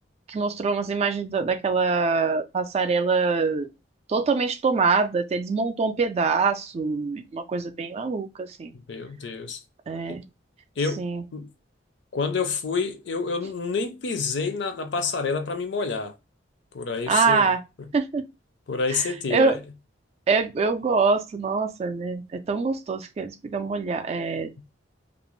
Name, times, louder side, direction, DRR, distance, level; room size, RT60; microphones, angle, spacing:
voice 1, 0.3-3.7 4.1-8.7 9.9-10.2 11.0-11.2 17.1-17.6 17.9-18.2 18.9-19.6 20.3-24.5, right 4 dB, 35° right, 0.3 m, -24 dB
voice 2, 8.9-9.6 10.1-10.2 10.8-11.0 11.3-11.5 12.1-16.1 16.7-17.5 18.7-19.6, left 4 dB, 70° left, 0.5 m, -28 dB
2.5 x 2.0 x 3.0 m
head